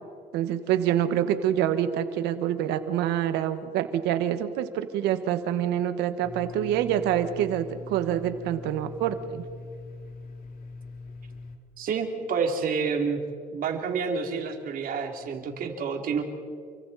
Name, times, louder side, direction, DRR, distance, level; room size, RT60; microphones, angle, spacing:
voice 1, 0.3-9.4, right 10 dB, 90° right, 10 dB, 1.5 m, -26 dB
Domestic sounds home sounds, 6.2-11.6, left 3 dB, 55° left, 2.6 m, -42 dB
voice 2, 11.8-13.2 13.5-16.2, right 5 dB, 55° right, 3 dB, 3.1 m, -28 dB
29.0 x 23.5 x 4.2 m, 2.1 s
cardioid pair, 110°, 17 cm